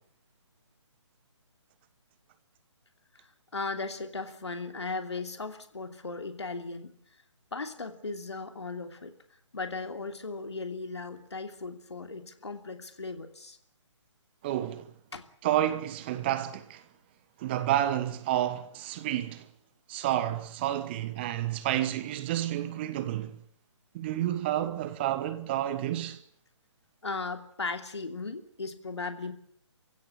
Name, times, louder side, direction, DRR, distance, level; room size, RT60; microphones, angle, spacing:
voice 1, 3.2-6.9 7.5-9.1 9.5-13.6 15.1-15.2 27.0-29.3, left 3 dB, 65° left, 3.0 m, -37 dB
voice 2, 14.4-14.9 15.4-16.8 17.4-19.5 19.9-23.3 23.9-26.2, right 12 dB, 20° right, 1.2 m, -30 dB
29.0 x 16.0 x 8.7 m
figure-of-eight pair, 145°, 16 cm